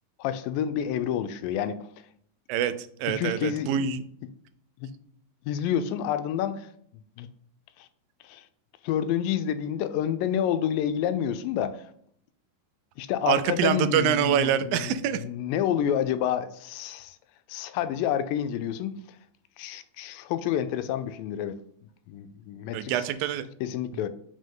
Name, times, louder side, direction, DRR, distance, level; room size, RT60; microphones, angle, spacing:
voice 1, 0.2-1.9 3.2-3.7 4.8-4.9 5.5-7.3 7.8-7.9 8.2-8.5 8.8-11.8 13.0-17.2 17.5-19.2 19.6-21.6 22.1-23.0 23.6-24.1, left 9 dB, 85° left, 2.2 m, -29 dB
voice 2, 2.5-4.0 13.3-15.2 22.7-23.4, right 9 dB, 90° right, 2.3 m, -25 dB
5.8 x 5.2 x 3.7 m
omnidirectional pair, 3.9 m